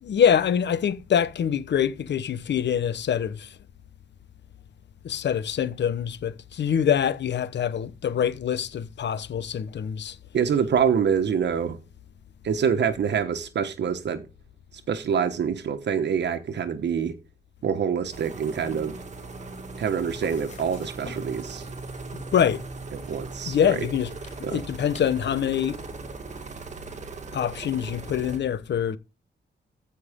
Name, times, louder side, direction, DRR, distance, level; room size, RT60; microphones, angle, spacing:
voice 1, 0.0-3.5 5.0-10.2 22.1-22.6 23.5-24.1 24.5-25.8 27.3-29.0, left 8 dB, 80° left, 0.9 m, -25 dB
voice 2, 10.3-11.8 12.4-14.3 14.9-17.2 17.6-19.0 19.8-21.7 22.9-23.8 24.4-24.6, right 7 dB, 80° right, 1.2 m, -26 dB
sound 1, 18.1-28.4, right 3 dB, 40° right, 1.9 m, -39 dB
sound 2, 19.2-27.4, left 4 dB, 40° left, 4.8 m, -52 dB
15.0 x 5.8 x 3.6 m
wide cardioid pair, 170°, 18 cm